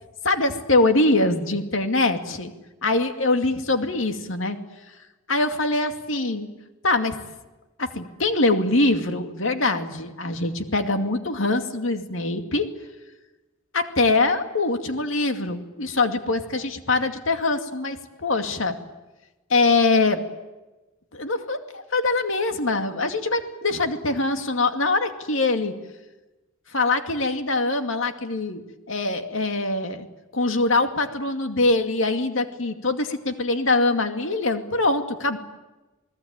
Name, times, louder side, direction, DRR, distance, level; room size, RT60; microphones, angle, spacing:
voice 1, 0.2-2.5 2.8-4.6 5.3-6.5 6.8-7.2 7.8-12.7 13.7-18.8 19.5-20.2 21.1-25.7 26.7-28.6 28.9-30.1 30.3-35.4, left 2 dB, 65° left, 6 dB, 2.4 m, -23 dB
29.0 x 19.5 x 9.0 m, 1.1 s
head